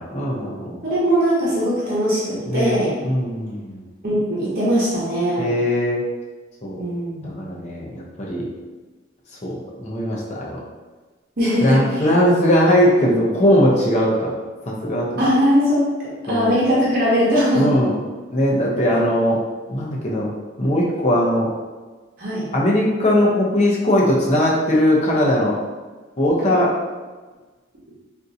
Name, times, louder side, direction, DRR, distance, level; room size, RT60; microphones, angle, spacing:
voice 1, 0.0-0.8 2.5-3.8 5.4-6.0 6.6-6.8 7.2-8.5 9.4-10.6 11.6-14.3 14.7-15.1 16.3-16.6 17.5-17.9 18.3-19.4 19.7-20.3 20.6-21.5 22.5-25.5 26.2-26.8, equal, 35° left, -4 dB, 0.7 m, -19 dB
voice 2, 0.8-2.9 4.0-5.5 6.8-7.3 11.4-11.8 15.2-15.8 16.3-17.7 22.2-22.5, equal, 50° right, -8 dB, 0.9 m, -20 dB
3.6 x 2.6 x 2.7 m, 1.3 s
head